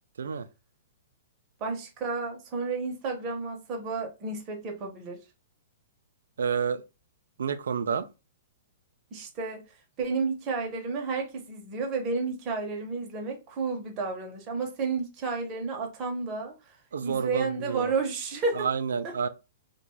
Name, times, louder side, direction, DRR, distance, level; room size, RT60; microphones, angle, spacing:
voice 1, 1.6-5.2 9.1-9.7 10.0-16.8 17.0-18.7 19.0-19.1, right 4 dB, 30° right, 0.7 m, -31 dB
voice 2, 6.4-6.8 7.4-8.1 16.9-17.9 18.5-19.3, right 6 dB, 90° right, 0.4 m, -29 dB
2.5 x 2.2 x 3.0 m
hypercardioid pair, 150°, 0 cm